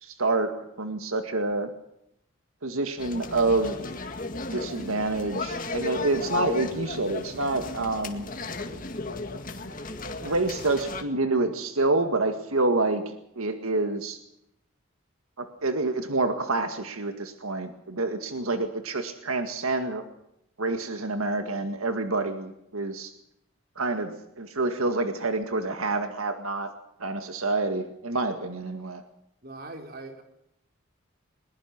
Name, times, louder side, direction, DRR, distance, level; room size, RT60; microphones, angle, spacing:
voice 1, 0.0-1.7 2.6-3.8 4.5-8.3 10.2-13.0 13.4-14.2 15.4-20.0 20.6-23.1 23.8-26.7 27.0-29.0, right 2 dB, 85° right, 7 dB, 1.9 m, -27 dB
sound 1, 3.0-11.0, left 3 dB, 40° left, 2.0 m, -34 dB
voice 2, 29.4-30.2, right 2 dB, 45° right, 4 dB, 3.9 m, -41 dB
21.5 x 21.0 x 6.0 m, 0.79 s
head